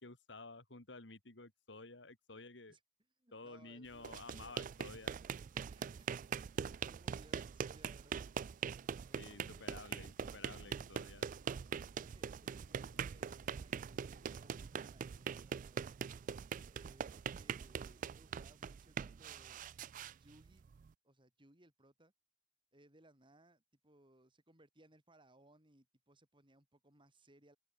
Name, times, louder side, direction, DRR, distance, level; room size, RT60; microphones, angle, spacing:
voice 1, 0.0-2.8 3.3-5.2 9.1-11.3, left 3 dB, 85° left, 2.7 m, -53 dB
voice 2, 3.2-4.6 5.5-6.1 6.5-8.5 9.1-10.0 11.9-15.9 16.7-19.6 20.2-20.7 21.0-22.1 22.7-27.6, right 1 dB, 30° right, 5.9 m, -66 dB
sound 1, 3.9-20.9, right 7 dB, 45° right, 0.3 m, -43 dB
sound 2, 9.1-15.4, right 1 dB, 80° right, 5.8 m, -65 dB
open air
head